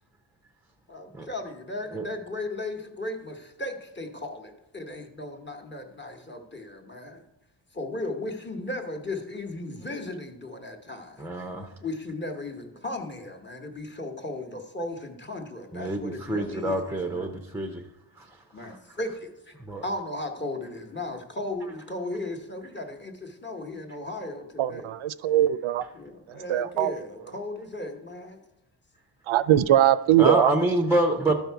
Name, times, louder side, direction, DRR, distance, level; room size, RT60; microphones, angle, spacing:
voice 1, 0.9-7.2 7.7-11.2 11.8-17.3 18.5-19.6 19.8-24.9 25.9-28.4, left 2 dB, 25° left, 1.0 m, -36 dB
voice 2, 11.2-11.7 15.7-17.8 18.2-18.3 19.7-19.8 30.2-31.3, right 1 dB, 5° right, 0.4 m, -26 dB
voice 3, 25.2-25.8 26.5-26.9 29.3-30.6, right 12 dB, 85° right, 0.5 m, -20 dB
13.0 x 5.3 x 4.6 m
wide cardioid pair, 170°, 47 cm